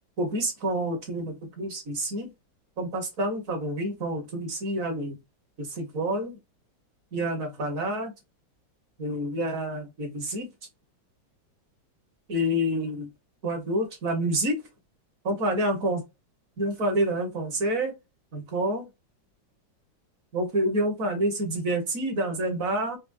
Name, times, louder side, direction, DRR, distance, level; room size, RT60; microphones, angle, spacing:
voice 1, 0.2-2.3 2.8-5.2 5.6-6.4 7.1-8.1 9.0-10.5 12.3-13.1 13.4-14.6 15.2-16.0 16.6-17.9 18.3-18.9 20.3-23.0, right 1 dB, 50° right, 1.4 m, -28 dB
4.6 x 3.0 x 2.4 m
omnidirectional pair, 2.1 m